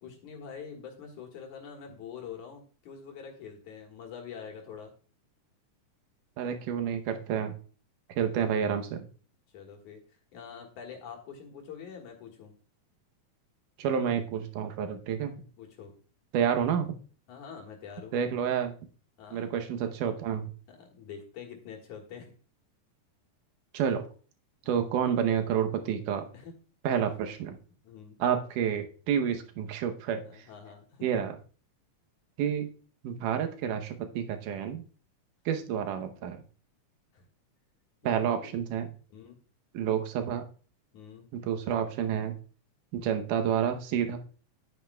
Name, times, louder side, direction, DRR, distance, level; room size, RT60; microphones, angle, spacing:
voice 1, 0.0-4.9 9.5-10.0 10.3-12.5 15.6-15.9 17.3-18.1 19.2-19.6 20.7-22.4 24.6-24.9 26.3-26.5 27.8-28.2 30.2-31.1 35.9-36.1 37.1-37.3 38.0-38.6 39.1-39.4 40.9-41.4, left 7 dB, 70° left, 1 dB, 2.9 m, -45 dB
voice 2, 6.4-7.6 8.2-9.0 13.8-15.4 16.3-16.9 18.1-18.7 19.3-20.5 23.7-24.1 24.7-26.3 26.8-27.6 28.2-30.4 31.0-31.3 32.4-32.7 33.0-34.8 35.5-36.4 38.0-38.9 39.7-40.4 41.3-42.3 42.9-44.2, right 8 dB, 85° right, 6 dB, 2.5 m, -29 dB
10.0 x 9.3 x 2.2 m, 0.39 s
omnidirectional pair, 3.6 m